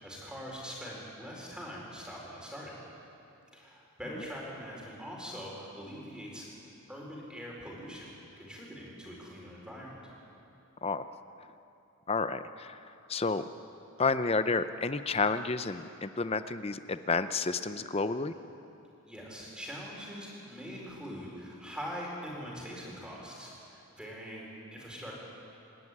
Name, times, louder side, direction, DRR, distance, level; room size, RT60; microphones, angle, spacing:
voice 1, 0.0-2.7 3.5-6.5 6.9-8.1 8.4-9.9 19.0-25.2, equal, 5° right, -3 dB, 4.5 m, -43 dB
voice 2, 12.1-12.7 13.1-13.4 14.0-18.3, left 4 dB, 25° left, 11 dB, 0.6 m, -30 dB
26.0 x 12.0 x 9.9 m, 2.8 s
head